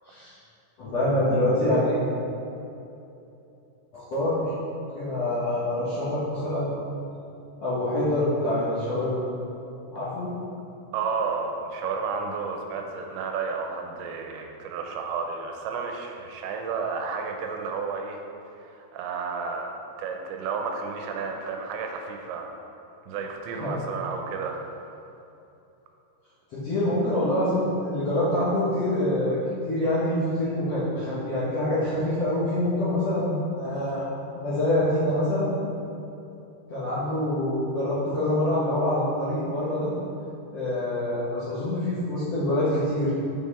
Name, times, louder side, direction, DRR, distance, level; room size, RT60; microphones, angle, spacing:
voice 1, 0.8-2.0 3.9-6.8 7.6-9.1 9.9-10.3 23.6-23.8 26.5-29.4 29.6-34.0 34.3-35.5 36.7-39.9 40.5-43.1, left 1 dB, 60° left, -12 dB, 1.7 m, -25 dB
voice 2, 10.9-18.2 18.6-19.7 20.0-22.6 23.1-24.6, right 5 dB, 85° right, 2 dB, 3.0 m, -32 dB
7.7 x 5.6 x 4.2 m, 2.8 s
omnidirectional pair, 5.1 m